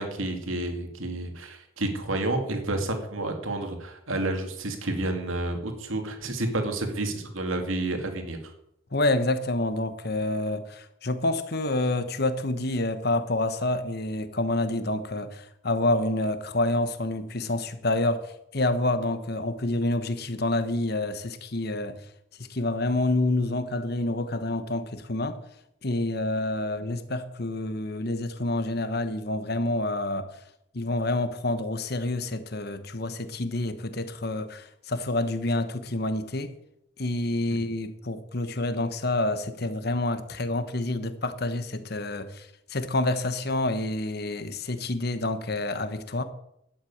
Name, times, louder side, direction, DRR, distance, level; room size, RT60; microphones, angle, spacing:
voice 1, 0.0-8.4 37.5-37.7, right 2 dB, 80° right, 2.5 m, -30 dB
voice 2, 8.9-22.0 22.5-25.4 25.8-30.3 30.7-36.5 37.0-46.2, left 2 dB, 50° left, 1.2 m, -28 dB
12.0 x 8.0 x 8.7 m
head